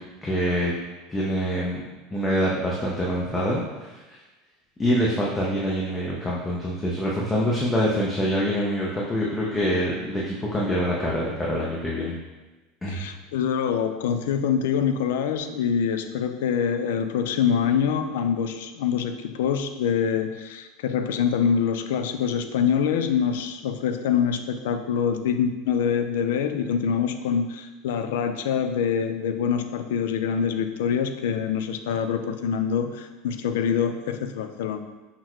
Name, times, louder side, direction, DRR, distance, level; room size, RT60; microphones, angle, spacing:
voice 1, 0.2-0.7 1.1-1.8 2.1-3.9 4.8-12.1 12.8-13.0, equal, 10° left, -5 dB, 0.5 m, -25 dB
voice 2, 12.9-34.8, left 7 dB, 90° left, 8 dB, 0.3 m, -25 dB
5.8 x 2.1 x 3.0 m, 1.2 s
supercardioid pair, 160°, 0 cm